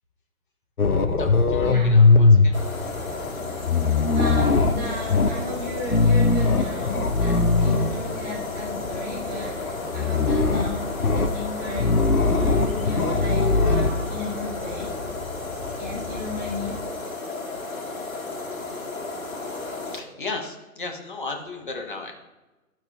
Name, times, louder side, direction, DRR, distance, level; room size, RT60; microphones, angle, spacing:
sound 1, 0.8-16.8, left 3 dB, 85° left, 0.9 m, -22 dB
voice 1, 1.2-2.6 7.6-7.7 19.9-22.1, left 3 dB, 35° left, 2 dB, 1.2 m, -35 dB
sound 2, 2.5-20.0, left 3 dB, 70° left, 1.7 m, -33 dB
voice 2, 3.8-11.9 12.2-14.9 15.7-16.8, left 1 dB, 5° right, -6 dB, 1.1 m, -35 dB
12.0 x 5.8 x 2.3 m, 1.1 s
figure-of-eight pair, 145°, 44 cm